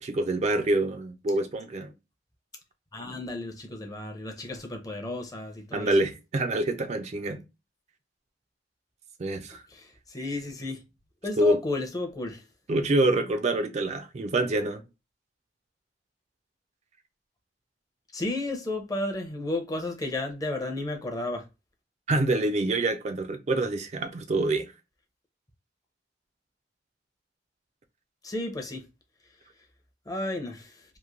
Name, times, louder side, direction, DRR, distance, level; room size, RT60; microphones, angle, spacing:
voice 1, 0.0-1.9 5.7-7.4 9.2-9.6 11.4-11.6 12.7-14.8 22.1-24.7, right 2 dB, 40° right, 0.4 m, -26 dB
voice 2, 2.9-5.9 10.1-10.8 11.2-12.4 18.1-21.4 28.2-28.8 30.1-30.6, left 2 dB, 20° left, 0.6 m, -32 dB
3.0 x 2.5 x 2.4 m
head